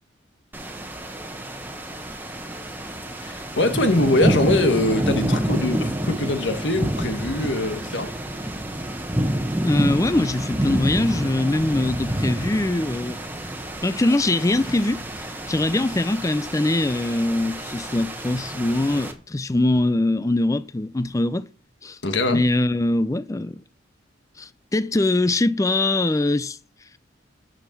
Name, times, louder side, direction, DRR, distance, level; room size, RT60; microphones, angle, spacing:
sound 1, 0.5-19.1, right 1 dB, 10° right, 1.2 m, -28 dB
voice 1, 3.2-8.1 22.0-22.4, left 2 dB, 65° left, 1.4 m, -22 dB
voice 2, 9.6-13.2 13.8-21.5 21.8-22.0 22.3-23.6 24.4-26.6, left 2 dB, 15° left, 0.4 m, -22 dB
9.9 x 6.2 x 7.0 m
head